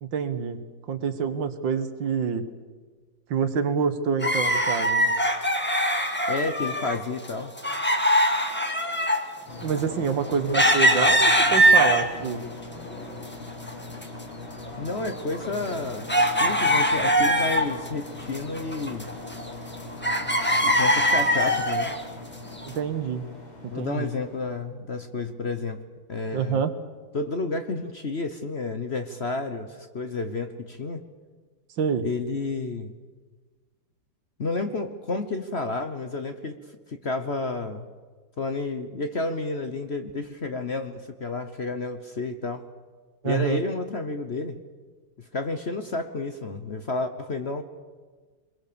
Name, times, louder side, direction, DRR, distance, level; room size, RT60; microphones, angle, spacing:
voice 1, 0.0-2.5 3.3-5.1 9.6-12.4 22.7-23.2 23.6-24.1 26.3-26.7 31.8-32.1 43.2-43.6, right 6 dB, 75° right, 10 dB, 2.0 m, -27 dB
sound 1, 4.2-7.0 7.2-12.3 12.8-13.7 13.9-14.0 14.7-17.9 18.2-19.7 20.0-22.0 22.6-22.7, equal, 5° left, 1.6 m, -22 dB
voice 2, 6.3-7.5 14.8-19.1 20.6-21.9 23.7-25.8 26.1-26.6 27.1-31.0 32.0-32.9 34.4-36.6 36.9-37.9 38.4-42.6 43.2-44.6 45.3-47.6, left 3 dB, 40° left, 8 dB, 1.1 m, -30 dB
sound 2, 9.5-24.6, left 2 dB, 90° left, 5.0 m, -41 dB
25.5 x 21.5 x 6.9 m, 1.4 s
omnidirectional pair, 2.1 m